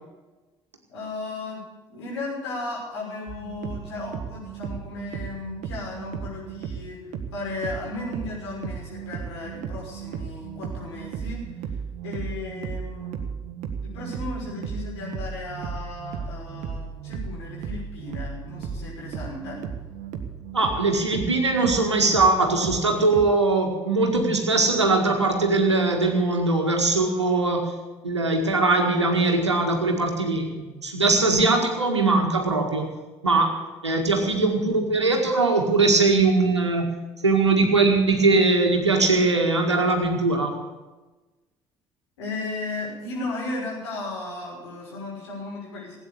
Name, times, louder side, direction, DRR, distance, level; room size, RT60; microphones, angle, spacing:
voice 1, 0.9-1.6 1.9-11.4 12.0-13.2 13.8-19.6 42.2-46.0, left 3 dB, 75° left, -4 dB, 5.9 m, -35 dB
sound 1, 3.3-23.2, right 7 dB, 55° right, 1.6 m, -35 dB
voice 2, 20.5-27.7 28.0-32.9 33.2-33.6 33.8-40.6, right 3 dB, 90° right, 3 dB, 1.9 m, -21 dB
16.5 x 9.1 x 8.5 m, 1.2 s
figure-of-eight pair, 50°, 14 cm